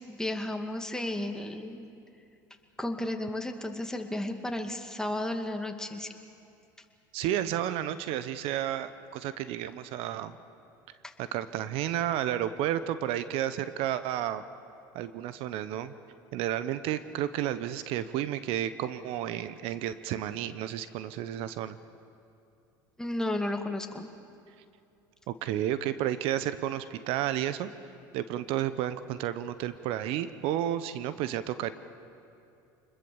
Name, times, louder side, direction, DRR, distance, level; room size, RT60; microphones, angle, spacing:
voice 1, 0.1-1.9 2.8-6.2 11.0-11.1 23.0-24.1, left 1 dB, 5° left, 4 dB, 2.3 m, -33 dB
voice 2, 7.1-10.3 11.2-14.4 14.9-15.9 16.3-21.8 25.3-27.7 28.1-31.7, right 11 dB, 60° right, 13 dB, 1.0 m, -31 dB
25.5 x 21.0 x 7.2 m, 2.6 s
hypercardioid pair, 85°, 11 cm